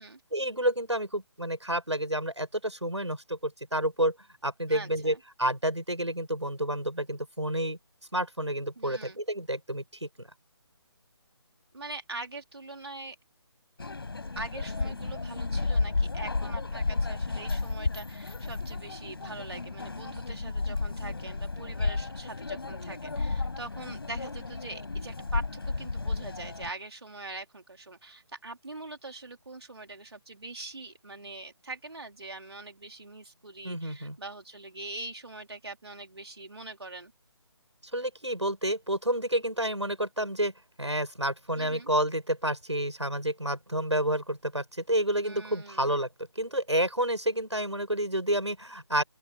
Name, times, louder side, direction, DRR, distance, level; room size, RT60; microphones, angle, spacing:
voice 1, 0.3-4.1 4.4-7.8 8.1-10.3 33.6-34.2 37.9-40.5 40.8-46.1 46.3-49.0, right 1 dB, 85° right, 8.0 m, -29 dB
voice 2, 4.7-5.2 8.8-9.2 11.7-13.2 14.4-37.1 41.6-41.9 45.2-45.9, right 2 dB, 65° right, 3.5 m, -43 dB
sound 1, 13.8-26.7, left 3 dB, 60° left, 5.5 m, -32 dB
open air
figure-of-eight pair, 150°, 14 cm